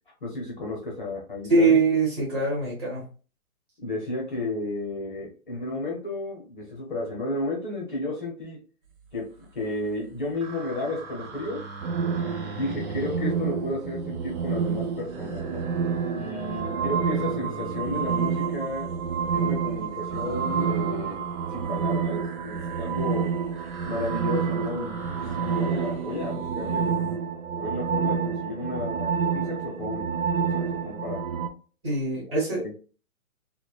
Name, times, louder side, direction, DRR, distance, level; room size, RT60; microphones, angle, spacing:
voice 1, 0.2-1.8 3.8-8.6 9.1-11.7 12.5-15.7 16.1-18.9 19.3-23.3 23.6-27.0 27.6-30.1 30.4-31.3, left 2 dB, 35° left, -2 dB, 0.6 m, -33 dB
voice 2, 1.5-3.0 31.8-32.8, right 3 dB, 20° right, -7 dB, 1.2 m, -23 dB
sound 1, 9.3-9.9 10.2-27.2, right 3 dB, 40° right, 1.0 m, -41 dB
sound 2, 11.8-31.5, right 6 dB, 70° right, 0.5 m, -28 dB
3.0 x 2.1 x 2.2 m, 0.37 s
hypercardioid pair, 170°, 42 cm